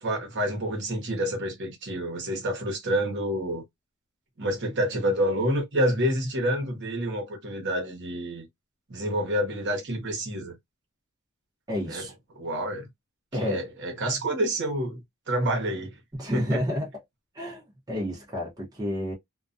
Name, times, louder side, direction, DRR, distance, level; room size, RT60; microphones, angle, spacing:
voice 1, 0.0-3.6 4.4-8.5 8.9-10.6 11.9-12.0 12.4-12.9 13.4-15.9 16.3-16.6, equal, 60° right, 1.0 m, -28 dB
voice 2, 11.7-12.1 13.3-13.6 16.1-16.9 17.3-19.1, left 1 dB, 20° right, 0.8 m, -30 dB
2.3 x 2.2 x 2.5 m
head